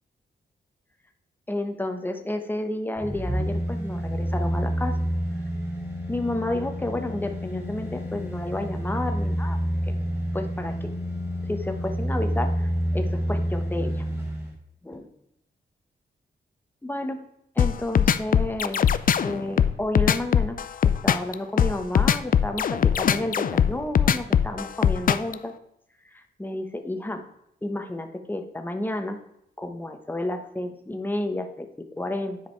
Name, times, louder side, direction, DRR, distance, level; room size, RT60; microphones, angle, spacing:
voice 1, 1.5-4.9 6.1-9.6 9.9-10.0 10.3-10.9 11.5-14.0 14.8-15.0 16.8-17.3 17.5-18.8 19.2-20.6 20.8-25.5 26.1-27.2 27.6-29.2 29.6-31.7 32.0-32.4, left 1 dB, 10° left, 5 dB, 1.1 m, -31 dB
sound 1, 2.9-14.5 14.9-15.0, equal, 15° right, 3.2 m, -28 dB
sound 2, 17.6-25.3, left 8 dB, 50° left, 0.4 m, -20 dB
9.9 x 5.1 x 4.7 m, 0.77 s
wide cardioid pair, 105°, 18 cm